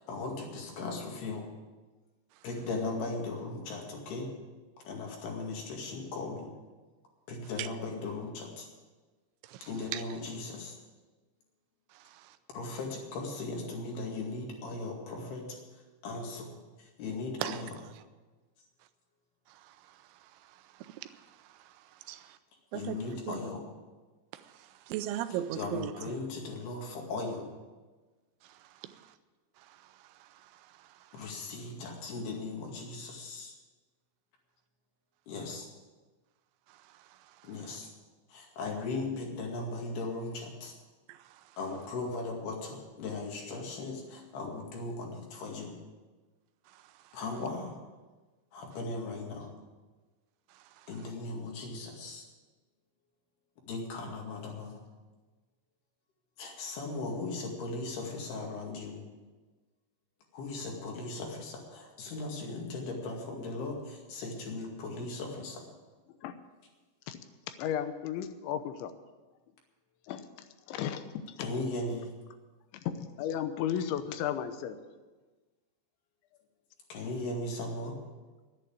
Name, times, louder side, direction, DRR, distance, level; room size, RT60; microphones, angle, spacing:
voice 1, 0.0-1.4 2.4-4.3 4.9-6.5 7.3-8.7 9.6-10.8 12.5-15.6 16.0-17.7 22.7-23.6 25.5-27.5 31.1-33.5 35.3-35.7 37.4-37.9 38.3-40.7 41.6-45.7 47.1-47.8 48.5-49.6 50.9-52.3 53.7-54.8 56.4-59.1 60.3-65.6 71.4-72.1 76.9-78.0, left 3 dB, 65° left, 0 dB, 4.0 m, -38 dB
voice 2, 9.4-10.0 11.9-12.4 17.4-17.6 19.5-22.4 22.7-23.4 24.3-26.2 28.4-29.2 29.6-31.3 36.7-37.7 41.1-41.6 46.7-47.2 50.5-50.9, right 12 dB, 90° right, 11 dB, 3.1 m, -42 dB
voice 3, 67.6-68.9 70.1-70.3 70.7-71.1 71.4-71.5 72.7-74.8, left 9 dB, 85° left, 9 dB, 3.3 m, -34 dB
11.0 x 10.5 x 8.7 m, 1.3 s
omnidirectional pair, 5.2 m